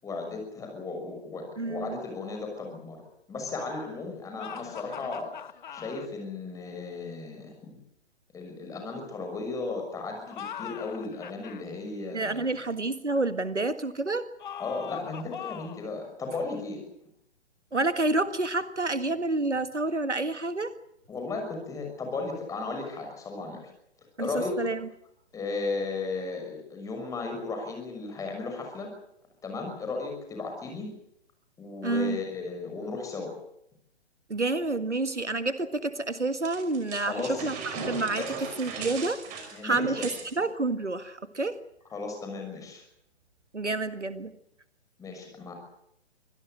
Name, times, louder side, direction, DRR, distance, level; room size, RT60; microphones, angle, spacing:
voice 1, 0.0-3.0 3.3-5.3 5.7-7.8 8.3-12.6 14.6-16.8 21.1-23.6 24.2-24.5 25.3-28.9 29.4-30.9 31.6-33.3 37.0-37.5 38.2-38.3 39.5-40.1 41.9-42.8 45.0-45.5, left 3 dB, 10° left, 3 dB, 6.1 m, -35 dB
voice 2, 1.6-2.0 12.1-14.3 17.7-20.7 24.2-24.8 31.8-32.2 34.3-38.2 38.6-40.1 40.4-41.6 43.5-44.3, right 2 dB, 80° right, 12 dB, 1.9 m, -29 dB
sound 1, 4.4-6.1 10.2-11.6 14.4-15.9, left 9 dB, 45° left, 1.2 m, -41 dB
sound 2, 36.4-40.4, right 4 dB, 20° right, 5.5 m, -38 dB
25.0 x 17.5 x 7.9 m, 0.76 s
figure-of-eight pair, 130°, 35 cm